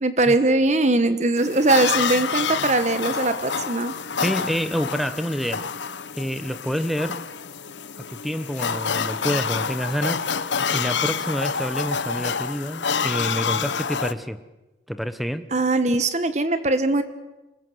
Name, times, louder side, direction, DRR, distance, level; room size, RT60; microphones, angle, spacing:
voice 1, 0.0-3.9 15.5-17.0, right 2 dB, 40° right, 11 dB, 1.2 m, -21 dB
sound 1, 1.4-14.1, left 6 dB, 85° left, 0.9 m, -28 dB
voice 2, 4.2-7.2 8.2-10.2 10.7-14.4 14.9-15.5, equal, ahead, 11 dB, 1.0 m, -28 dB
26.0 x 21.0 x 8.0 m, 1.1 s
head